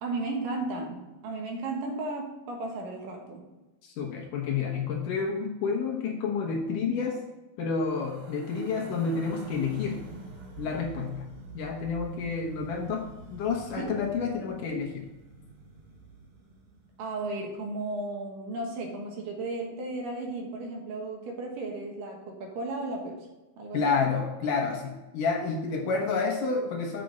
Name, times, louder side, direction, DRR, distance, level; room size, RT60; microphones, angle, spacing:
voice 1, 0.0-3.4 13.8-13.9 17.0-23.3 23.6-23.9, right 2 dB, 70° right, 1 dB, 2.7 m, -34 dB
voice 2, 3.8-7.2 7.6-10.0 10.6-11.2 11.5-13.1 13.3-15.1 23.7-27.0, left 5 dB, 70° left, 1 dB, 2.3 m, -29 dB
sound 1, 7.8-17.1, right 3 dB, 50° right, 2.3 m, -46 dB
7.6 x 5.9 x 5.2 m, 1.1 s
omnidirectional pair, 4.4 m